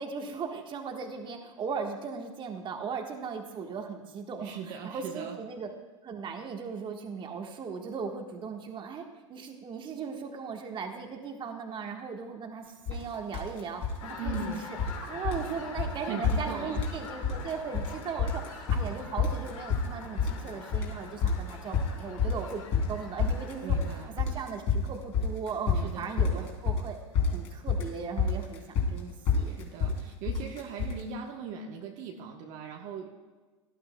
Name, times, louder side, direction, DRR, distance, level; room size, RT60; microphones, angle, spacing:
voice 1, 0.0-5.7 6.0-14.5 15.0-27.0 27.3-29.6, right 5 dB, 30° right, 3 dB, 1.4 m, -38 dB
voice 2, 4.4-5.4 14.2-14.7 16.0-16.9 23.6-24.2 25.8-26.6 29.4-33.1, right 5 dB, 45° right, 1 dB, 1.2 m, -39 dB
sound 1, 12.9-13.0 13.3-14.0 14.3-15.0 15.2-15.5 15.8-15.9 16.2-17.0 17.2-17.9 18.2-31.0, left 5 dB, 35° left, 3.2 m, -28 dB
sound 2, 14.0-24.1, left 5 dB, 75° left, 2.4 m, -45 dB
18.0 x 12.0 x 2.3 m, 1.3 s
hypercardioid pair, 105°, 17 cm